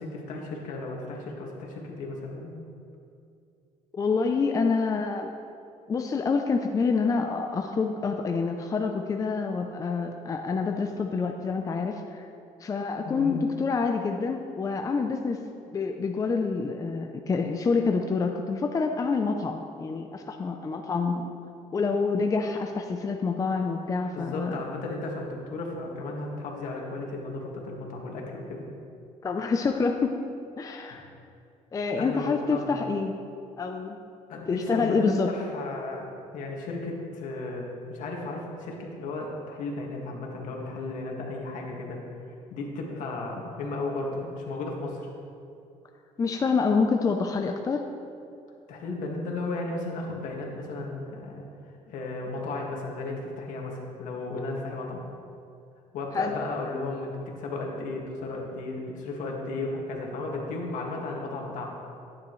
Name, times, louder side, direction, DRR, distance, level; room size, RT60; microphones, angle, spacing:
voice 1, 0.0-2.6 13.1-13.4 24.1-28.7 30.9-31.0 32.0-32.8 34.3-36.1 36.3-42.0 42.5-45.1 48.7-55.0 55.9-61.7, left 2 dB, 75° left, -1 dB, 2.0 m, -34 dB
voice 2, 3.9-5.3 5.9-12.3 12.6-15.4 15.7-21.3 21.7-24.6 29.2-30.3 30.6-31.1 31.7-33.2 33.6-34.0 34.5-35.3 46.2-47.8 56.1-56.4, left 4 dB, 25° left, 4 dB, 0.6 m, -27 dB
12.0 x 9.8 x 3.2 m, 2.5 s
cardioid pair, 125°, 13 cm